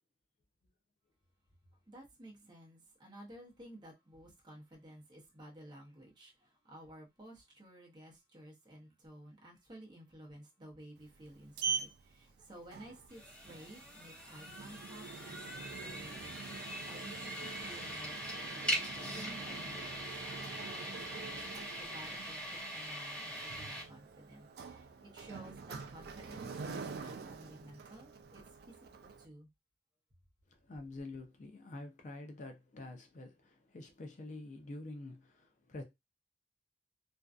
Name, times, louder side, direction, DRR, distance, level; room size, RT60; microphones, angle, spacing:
voice 1, 1.9-16.3 16.6-20.1 20.6-28.7 29.2-29.5, right 1 dB, 25° right, 0.7 m, -54 dB
Sliding door, 11.0-29.3, right 5 dB, 60° right, 0.3 m, -45 dB
sound 1, 13.1-23.8, equal, 5° left, 1.1 m, -42 dB
voice 2, 30.7-35.8, left 2 dB, 45° left, 0.5 m, -47 dB
2.5 x 2.2 x 2.3 m
head